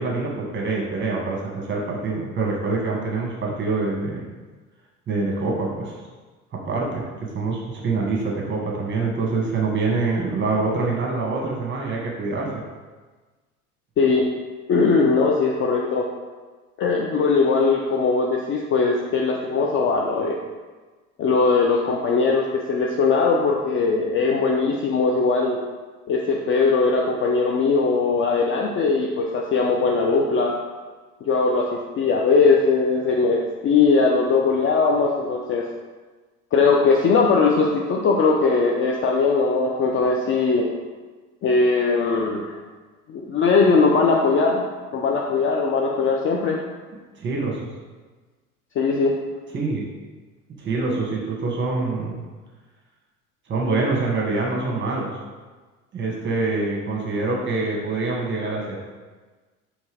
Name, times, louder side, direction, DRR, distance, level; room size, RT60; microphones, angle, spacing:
voice 1, 0.0-4.2 5.1-5.9 6.5-7.0 7.3-12.5 47.2-47.7 49.5-49.8 50.6-52.2 53.5-55.1 55.9-58.8, right 3 dB, 25° right, -2 dB, 1.4 m, -25 dB
voice 2, 14.0-14.3 14.7-16.1 16.8-20.4 21.2-25.6 26.1-30.5 31.2-35.7 36.5-40.7 41.4-42.6 43.1-44.6 44.9-46.6 48.8-49.1, left 4 dB, 30° left, 0 dB, 0.4 m, -20 dB
4.4 x 3.3 x 3.4 m, 1.3 s
hypercardioid pair, 75°, 44 cm